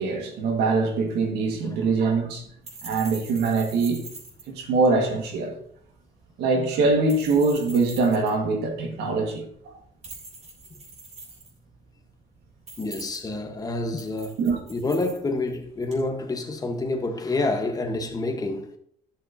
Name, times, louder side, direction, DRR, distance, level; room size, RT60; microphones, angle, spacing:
voice 1, 0.0-2.5 2.8-4.0 4.5-5.5 6.4-9.8 14.4-14.6, right 3 dB, 85° right, 2.0 m, -23 dB
sound 1, 1.0-16.1, right 3 dB, 40° right, 3.6 m, -46 dB
voice 2, 12.8-14.4 14.7-18.7, left 2 dB, 20° left, 1.4 m, -28 dB
12.0 x 6.5 x 2.9 m
cardioid pair, 110°, 17 cm